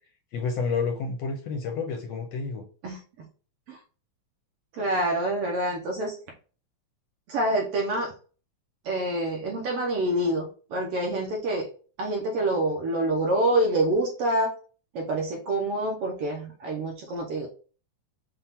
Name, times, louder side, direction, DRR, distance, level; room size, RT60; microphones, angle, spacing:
voice 1, 0.3-2.6, left 5 dB, 75° left, 3 dB, 1.6 m, -29 dB
voice 2, 4.7-6.2 7.3-8.1 8.8-11.7 12.0-14.5 14.9-17.5, right 1 dB, 65° right, 0 dB, 1.6 m, -26 dB
5.8 x 2.4 x 3.5 m, 0.38 s
omnidirectional pair, 3.5 m